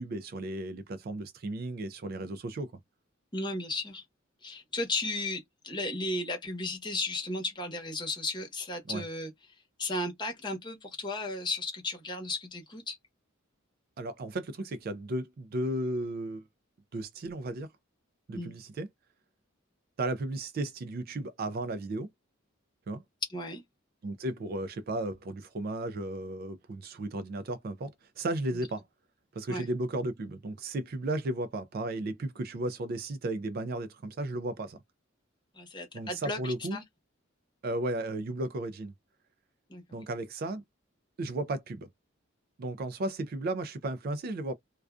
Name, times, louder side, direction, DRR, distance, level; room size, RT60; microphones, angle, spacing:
voice 1, 0.0-2.7 8.9-9.0 14.0-16.4 16.9-17.7 18.3-18.9 20.0-22.1 22.9-23.0 24.0-28.8 29.3-34.8 35.9-36.8 37.6-38.9 39.9-40.6 41.2-41.9 42.6-44.5, right 2 dB, 50° right, 0.3 m, -34 dB
voice 2, 3.3-4.0 4.4-9.3 9.8-13.0 18.3-18.5 23.3-23.6 29.5-29.7 35.5-36.8 39.7-40.0, left 2 dB, 25° left, 0.9 m, -35 dB
2.3 x 2.3 x 2.3 m
head